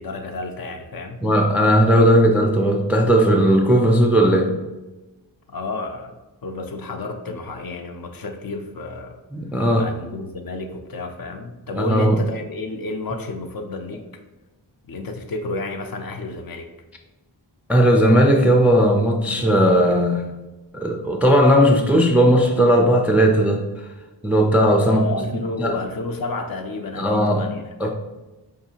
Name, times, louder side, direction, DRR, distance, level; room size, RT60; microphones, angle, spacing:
voice 1, 0.0-1.2 5.5-6.2 6.4-9.2 9.7-14.0 14.9-16.7 19.3-19.5 24.8-27.9, left 3 dB, 55° left, 5 dB, 0.5 m, -31 dB
voice 2, 1.2-4.5 9.3-9.9 11.7-12.2 17.7-20.3 20.7-23.9 24.2-25.1 25.3-25.8 27.0-27.5 27.8-27.9, equal, 5° right, 2 dB, 0.3 m, -17 dB
4.8 x 2.6 x 2.8 m, 1.1 s
wide cardioid pair, 65°, 44 cm